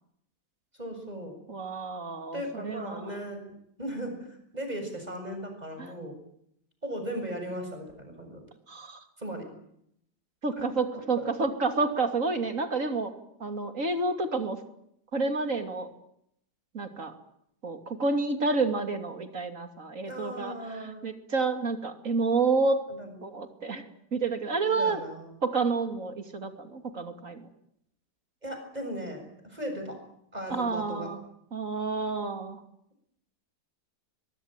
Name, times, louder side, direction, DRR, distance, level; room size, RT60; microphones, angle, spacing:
voice 1, 0.8-1.3 2.3-3.4 3.8-4.2 4.5-6.1 6.8-8.4 9.2-9.5 10.6-10.7 11.2-11.3 20.1-21.0 22.9-23.2 24.6-25.3 28.4-29.2 29.5-30.0 30.3-31.1, equal, 25° right, 5 dB, 7.3 m, -37 dB
voice 2, 1.5-3.1 5.8-5.9 8.7-9.0 10.4-13.1 13.4-14.6 15.1-15.9 16.7-17.1 17.6-22.8 23.2-23.8 24.1-25.0 25.4-27.5 30.5-31.2 31.5-32.6, right 3 dB, 50° right, 7 dB, 3.0 m, -29 dB
23.0 x 22.5 x 9.1 m, 0.73 s
omnidirectional pair, 1.8 m